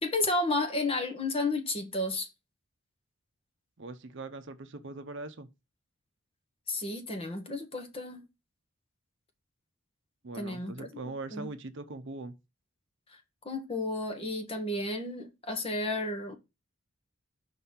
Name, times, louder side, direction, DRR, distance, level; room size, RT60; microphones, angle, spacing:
voice 1, 0.0-2.3 6.7-8.3 10.3-10.9 11.3-11.5 13.4-16.3, left 2 dB, 25° left, 1.3 m, -32 dB
voice 2, 3.8-5.5 10.2-12.3, right 2 dB, 55° right, 0.7 m, -41 dB
5.5 x 4.1 x 5.6 m
head